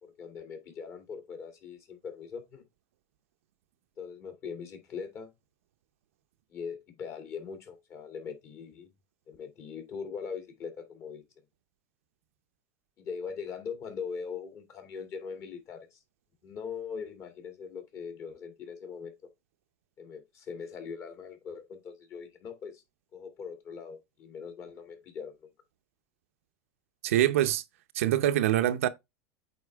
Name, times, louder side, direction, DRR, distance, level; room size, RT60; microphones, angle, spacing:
voice 1, 0.0-2.6 4.0-5.3 6.5-8.9 9.3-11.2 13.0-16.0 16.4-19.1 20.0-22.8 23.1-25.5, left 6 dB, 40° left, 2.4 m, -41 dB
voice 2, 27.0-27.6 27.9-28.9, right 13 dB, 90° right, 0.7 m, -24 dB
8.5 x 4.4 x 3.4 m
supercardioid pair, 135°, 7 cm